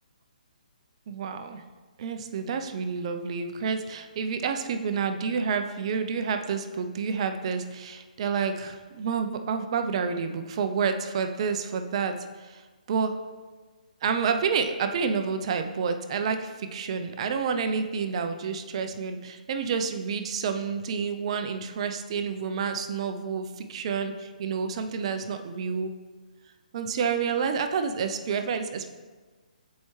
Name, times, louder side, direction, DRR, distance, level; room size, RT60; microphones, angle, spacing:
voice 1, 1.1-1.6 2.0-12.6 12.9-13.1 14.0-25.9 26.7-28.9, right 6 dB, 45° right, 8 dB, 0.4 m, -29 dB
7.1 x 4.6 x 3.1 m, 1.3 s
hypercardioid pair, 145°, 5 cm